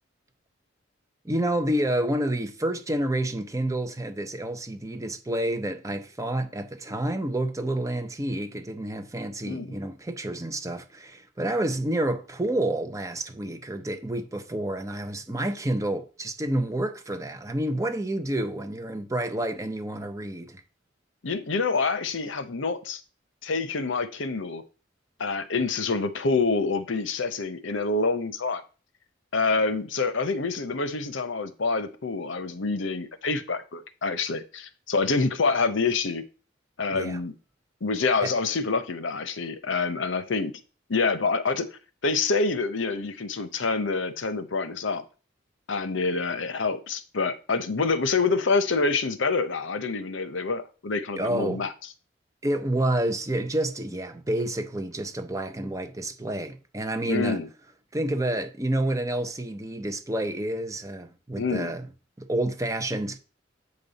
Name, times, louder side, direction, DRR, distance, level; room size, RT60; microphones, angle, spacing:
voice 1, 1.2-20.6 36.9-37.2 38.2-38.3 51.2-51.6 52.4-57.4 57.9-61.9 62.2-63.2, right 1 dB, 15° right, 0.7 m, -29 dB
voice 2, 9.5-9.8 21.2-23.0 23.4-24.6 25.2-28.6 29.3-36.2 36.8-37.3 37.8-40.5 40.9-41.7 42.0-45.0 45.7-51.7 57.1-57.5 61.4-61.7, left 4 dB, 80° left, 0.8 m, -27 dB
8.2 x 5.3 x 4.1 m
head